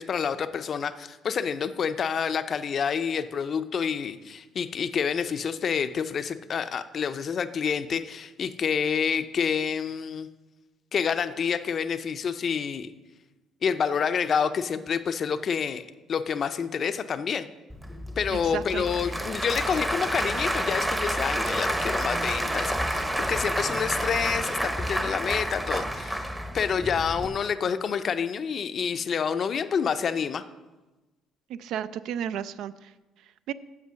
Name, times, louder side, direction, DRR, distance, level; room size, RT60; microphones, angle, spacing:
voice 1, 0.0-10.3 10.9-12.9 13.6-17.5 18.2-26.3 26.5-30.4, left 6 dB, 45° left, 11 dB, 0.5 m, -28 dB
Applause / Crowd, 17.7-27.3, right 1 dB, 10° right, 0.8 m, -29 dB
voice 2, 18.3-18.9 31.5-32.9 33.5-33.6, right 9 dB, 75° right, 15 dB, 0.4 m, -33 dB
8.3 x 7.2 x 6.3 m, 1.2 s
cardioid pair, 125°, 0 cm